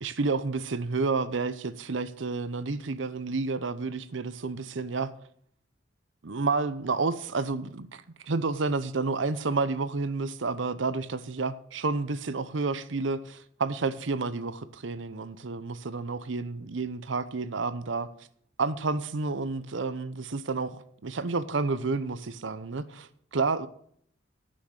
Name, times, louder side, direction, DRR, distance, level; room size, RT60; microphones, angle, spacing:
voice 1, 0.0-5.1 6.2-18.1 18.6-23.7, right 3 dB, 75° right, 0.7 m, -30 dB
9.7 x 6.3 x 6.5 m
head